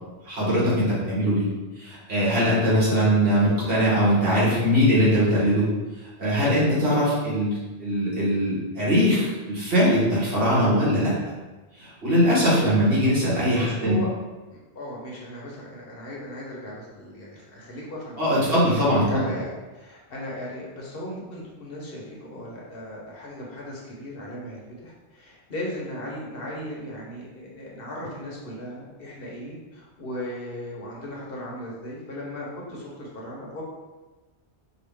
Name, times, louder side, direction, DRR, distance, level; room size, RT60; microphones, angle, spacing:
voice 1, 0.2-1.5 1.8-5.7 6.0-11.1 11.8-14.0 18.2-19.2, equal, 60° right, -7 dB, 1.6 m, -21 dB
voice 2, 13.5-14.1 14.5-18.5 18.9-33.6, left 1 dB, 60° left, -4 dB, 1.1 m, -37 dB
4.8 x 2.3 x 3.4 m, 1.2 s
omnidirectional pair, 1.1 m